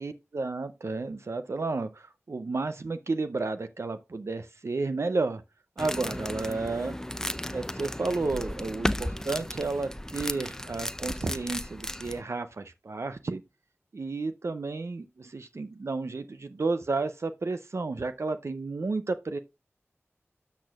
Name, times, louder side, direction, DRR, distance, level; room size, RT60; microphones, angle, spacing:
voice 1, 0.0-5.4 5.8-7.0 7.5-13.4 13.9-19.4, right 3 dB, 65° right, 0.5 m, -32 dB
sound 1, 5.8-12.2, left 1 dB, 10° left, 0.6 m, -34 dB
12.5 x 6.2 x 2.3 m
cardioid pair, 40°, 5 cm